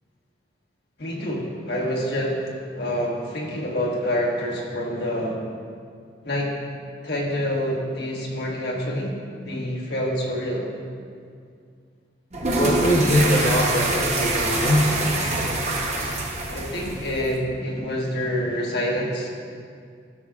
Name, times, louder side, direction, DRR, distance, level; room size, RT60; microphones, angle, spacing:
voice 1, 1.0-2.5 2.7-5.4 6.2-6.5 7.0-9.1 9.5-10.7 16.5-19.3, equal, 55° left, -2 dB, 1.3 m, -27 dB
sound 1, 12.3-17.4, right 2 dB, 35° right, 0.9 m, -25 dB
voice 2, 12.5-15.6, equal, 40° left, -5 dB, 0.8 m, -22 dB
13.5 x 7.3 x 2.4 m, 2.2 s
head